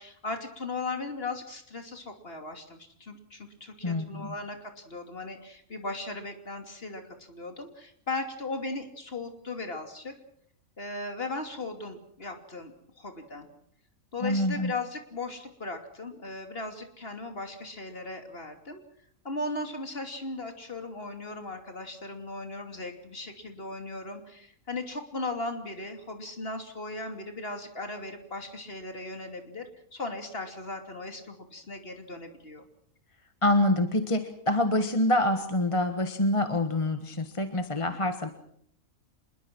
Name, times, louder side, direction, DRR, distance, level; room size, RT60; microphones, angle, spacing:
voice 1, 0.0-10.1 10.8-12.7 13.0-13.5 14.1-18.8 19.2-32.7, left 2 dB, 40° left, 5 dB, 3.1 m, -37 dB
voice 2, 3.8-4.3 14.2-14.7 33.4-38.3, left 1 dB, 25° left, 8 dB, 1.4 m, -26 dB
26.5 x 21.5 x 6.2 m, 0.65 s
omnidirectional pair, 1.5 m